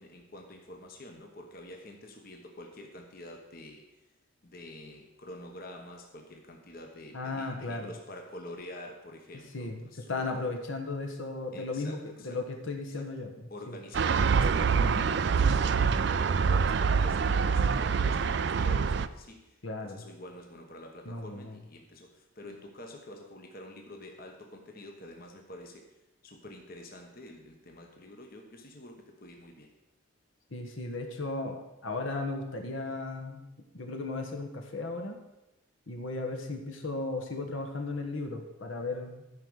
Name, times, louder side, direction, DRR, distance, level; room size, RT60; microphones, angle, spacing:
voice 1, 0.0-4.0 4.4-10.3 11.5-12.4 13.0-25.9 26.2-29.7, left 1 dB, 45° left, 2 dB, 1.3 m, -47 dB
voice 2, 7.1-7.9 9.5-9.8 10.1-12.0 12.2-13.3 13.7-13.8 14.7-15.1 19.6-20.0 21.0-21.6 30.5-33.5 33.7-35.2 35.9-39.2, left 3 dB, 70° left, 3 dB, 1.4 m, -35 dB
sound 1, 13.9-19.1, right 5 dB, 55° right, 0.4 m, -25 dB
13.0 x 5.3 x 6.3 m, 0.96 s
head